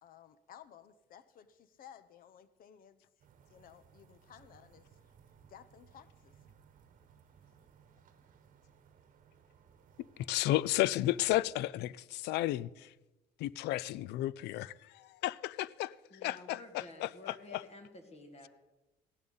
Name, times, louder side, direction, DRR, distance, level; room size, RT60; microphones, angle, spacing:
voice 1, 0.0-3.0 3.5-4.9 5.5-6.3, left 9 dB, 60° left, 0.8 m, -56 dB
sound 1, 3.2-11.4, right 7 dB, 50° right, 1.1 m, -62 dB
voice 2, 10.0-12.9 13.4-15.9 16.2-17.6, left 15 dB, 80° left, 0.4 m, -33 dB
voice 3, 16.1-18.5, left 2 dB, 40° left, 2.1 m, -51 dB
15.5 x 11.0 x 4.0 m
cardioid pair, 110°, 17 cm